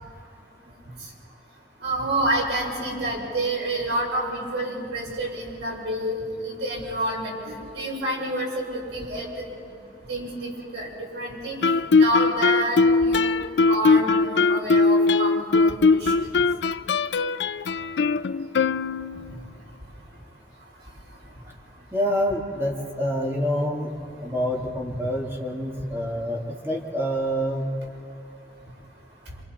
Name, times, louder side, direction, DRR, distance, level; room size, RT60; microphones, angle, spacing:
voice 1, 1.8-9.3 10.1-16.1, right 1 dB, 80° right, -3 dB, 7.0 m, -28 dB
Guitar, 11.6-19.3, left 4 dB, 75° left, 0.5 m, -20 dB
voice 2, 21.9-23.9 24.2-27.7, equal, 15° right, -1 dB, 2.7 m, -27 dB
28.0 x 27.0 x 4.5 m, 2.9 s
head